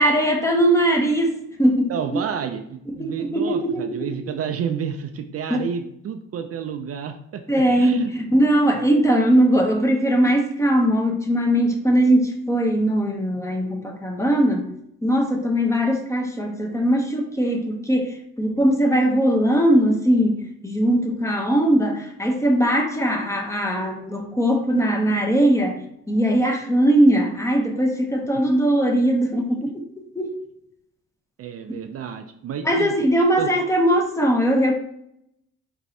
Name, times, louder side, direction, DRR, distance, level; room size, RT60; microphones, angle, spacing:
voice 1, 0.0-1.3 1.6-1.9 3.0-4.0 5.5-5.6 7.5-14.7 15.0-25.8 26.1-30.3 32.6-34.7, right 1 dB, 10° left, 2 dB, 0.7 m, -20 dB
voice 2, 1.9-7.4 7.8-8.1 31.4-33.0 33.4-33.5, right 7 dB, 50° right, 6 dB, 0.4 m, -30 dB
4.6 x 3.0 x 2.7 m, 0.74 s
cardioid pair, 90°, 30 cm